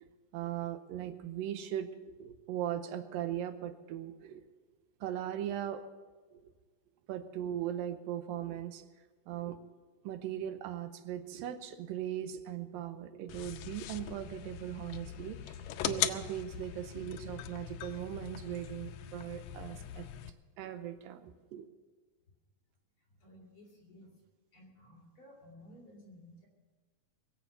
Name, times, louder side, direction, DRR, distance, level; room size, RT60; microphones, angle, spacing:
voice 1, 0.3-4.4 5.0-5.9 6.3-6.4 7.1-8.9 9.3-9.6 10.0-20.1 20.6-21.7, right 11 dB, 85° right, 10 dB, 2.5 m, -39 dB
sound 1, 13.3-20.3, left 12 dB, 90° left, 1.6 m, -40 dB
voice 2, 23.2-24.1 24.5-26.5, left 1 dB, 40° left, -1 dB, 3.9 m, -56 dB
22.0 x 7.8 x 6.7 m, 1.4 s
omnidirectional pair, 4.1 m